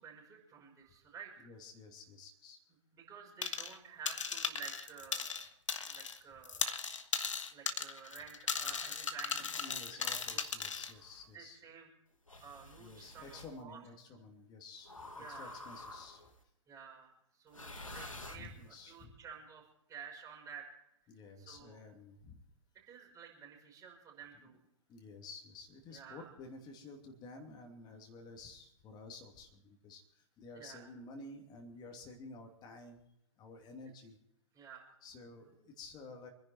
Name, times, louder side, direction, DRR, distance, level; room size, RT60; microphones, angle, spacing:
voice 1, 0.0-1.5 2.9-5.5 5.9-6.7 7.5-10.0 10.2-10.4 11.3-11.9 12.4-13.8 15.2-15.6 16.7-19.6 19.9-20.8 21.4-21.8 22.9-24.6 25.9-26.3 30.5-30.9 34.5-34.9, right 7 dB, 20° right, -3 dB, 5.8 m, -52 dB
voice 2, 1.4-2.6 9.6-11.6 12.8-16.2 17.7-19.2 21.1-22.4 24.4-24.5 24.9-33.0 33.4-34.2 35.0-36.3, left 3 dB, 25° left, 3 dB, 2.7 m, -52 dB
sound 1, 3.4-3.8 4.1-6.2 6.4-10.9, left 6 dB, 70° left, 1.5 m, -37 dB
sound 2, 8.5-9.1 10.1-11.3 12.3-13.5 14.9-16.4 17.5-18.9, left 2 dB, 90° left, 2.0 m, -50 dB
27.0 x 10.5 x 4.5 m, 0.79 s
figure-of-eight pair, 110°, 16 cm